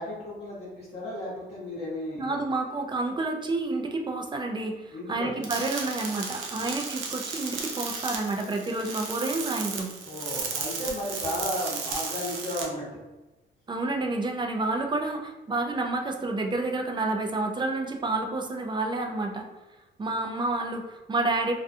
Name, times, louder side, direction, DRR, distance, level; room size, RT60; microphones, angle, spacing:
voice 1, 0.0-2.5 4.9-5.3 6.6-6.7 10.0-13.0, left 1 dB, 30° left, -9 dB, 1.0 m, -34 dB
voice 2, 2.2-9.9 13.7-19.4 20.0-21.5, right 2 dB, 25° right, 3 dB, 0.3 m, -29 dB
sound 1, 5.4-12.6, right 5 dB, 80° right, 0.5 m, -34 dB
2.4 x 2.2 x 2.6 m, 1.1 s
cardioid pair, 90°, 20 cm